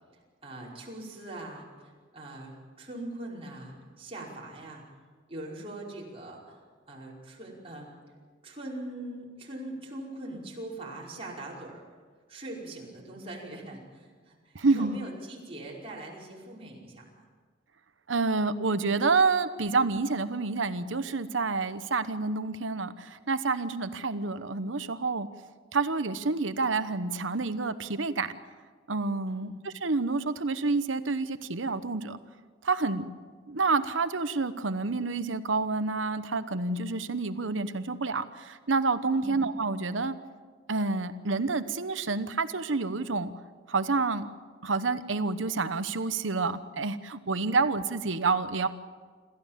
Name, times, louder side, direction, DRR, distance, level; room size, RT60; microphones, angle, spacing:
voice 1, 0.4-2.5 2.8-4.8 5.3-8.0 8.4-11.8 12.3-17.2 29.3-29.5 39.1-39.4, right 1 dB, 30° right, -4 dB, 5.2 m, -42 dB
voice 2, 14.5-15.0 18.1-25.3 25.7-28.4 28.9-32.2 32.6-33.1 33.5-40.2 40.7-43.3 43.7-44.3 44.6-48.7, right 3 dB, 90° right, 12 dB, 1.0 m, -28 dB
27.0 x 14.5 x 7.5 m, 1.5 s
head